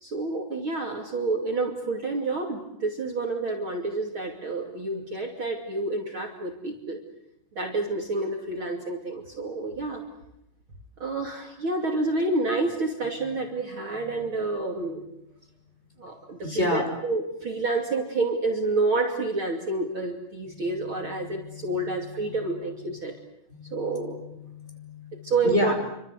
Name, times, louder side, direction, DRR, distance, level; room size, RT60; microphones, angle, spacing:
voice 1, 0.0-7.0 7.5-10.0 11.0-15.0 16.0-23.1 23.7-24.2 25.2-25.7, right 3 dB, 40° right, 2 dB, 3.3 m, -29 dB
voice 2, 16.4-16.9 20.4-22.4 22.9-23.0 23.5-25.7, left 2 dB, 20° left, 3 dB, 5.7 m, -32 dB
28.5 x 25.5 x 8.2 m, 0.81 s
omnidirectional pair, 3.6 m